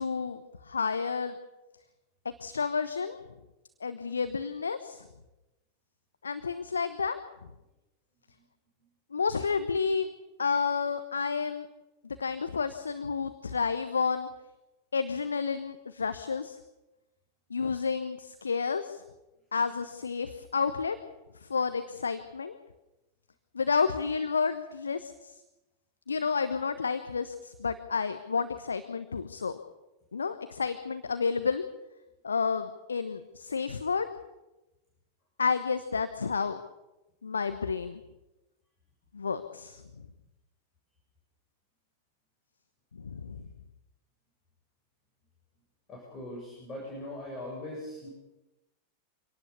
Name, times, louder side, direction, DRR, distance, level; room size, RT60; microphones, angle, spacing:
voice 1, 0.0-1.3 2.4-3.2 3.8-5.1 6.2-7.2 9.1-10.1 10.4-11.7 12.0-14.3 14.9-16.6 17.5-19.0 19.5-21.0 21.4-22.6 23.5-25.3 26.1-29.6 30.1-31.6 32.2-34.1 35.4-36.6 37.2-38.0 39.1-39.8 43.0-43.4, left 5 dB, 75° left, 10 dB, 1.1 m, -30 dB
voice 2, 45.9-48.1, left 1 dB, 25° left, -2 dB, 8.0 m, -40 dB
25.5 x 18.0 x 7.0 m, 1.0 s
figure-of-eight pair, 90°, 0 cm